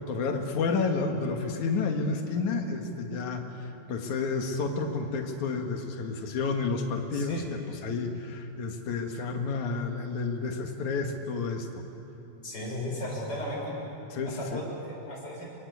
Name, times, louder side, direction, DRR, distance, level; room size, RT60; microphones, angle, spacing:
voice 1, 0.0-11.8 14.1-14.6, left 4 dB, 65° left, 4 dB, 3.1 m, -30 dB
voice 2, 7.1-7.5 12.4-13.8 14.2-15.6, left 1 dB, 30° left, -3 dB, 7.4 m, -36 dB
27.0 x 24.0 x 8.4 m, 2.9 s
omnidirectional pair, 3.7 m